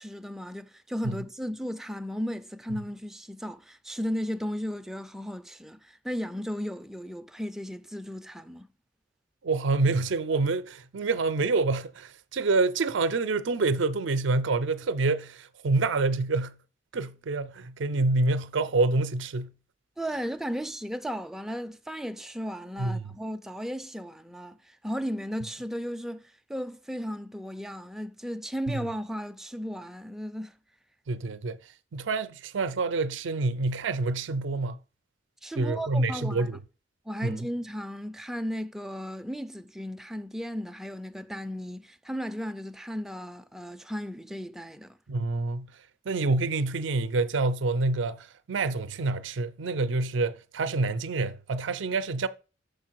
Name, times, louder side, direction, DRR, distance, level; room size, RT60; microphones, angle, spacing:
voice 1, 0.0-8.7 20.0-30.6 35.4-36.6 37.1-45.0, equal, ahead, 0.4 m, -35 dB
voice 2, 9.4-16.6 16.9-19.5 22.8-23.1 31.1-31.6 31.9-34.8 35.6-36.6 37.2-37.4 45.1-45.7 46.1-52.3, right 3 dB, 70° right, 0.5 m, -27 dB
6.6 x 4.5 x 4.5 m
head